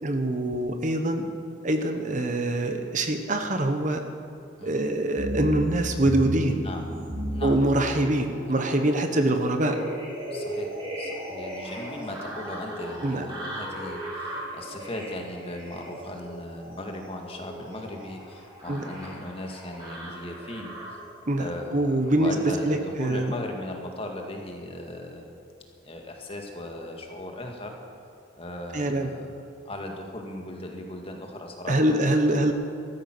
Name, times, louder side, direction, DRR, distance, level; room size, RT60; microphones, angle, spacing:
voice 1, 0.0-1.2 1.6-4.0 4.6-6.6 7.4-9.8 13.0-13.3 18.7-18.8 21.3-23.3 28.7-29.1 31.7-32.5, right 1 dB, 40° right, 6 dB, 1.1 m, -24 dB
sound 1, 5.2-21.1 21.7-22.4 22.9-23.0, equal, 25° right, 4.8 m, -35 dB
voice 2, 8.2-8.5 10.3-20.7 21.4-25.3 25.8-27.7 28.4-29.4 29.7-31.9, left 1 dB, 30° left, 2 dB, 1.9 m, -37 dB
14.5 x 13.5 x 6.1 m, 2.7 s
head